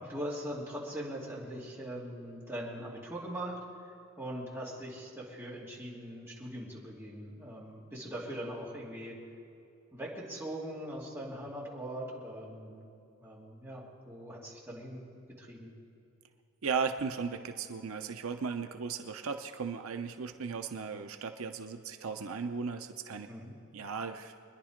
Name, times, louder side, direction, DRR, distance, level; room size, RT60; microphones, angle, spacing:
voice 1, 0.0-3.6 4.2-9.2 9.9-12.9 13.2-15.1 15.4-15.7 23.3-23.5, equal, 10° right, -6 dB, 2.8 m, -41 dB
voice 2, 16.6-23.3 23.7-24.3, right 5 dB, 80° right, 7 dB, 0.7 m, -36 dB
25.0 x 10.5 x 5.1 m, 2.7 s
head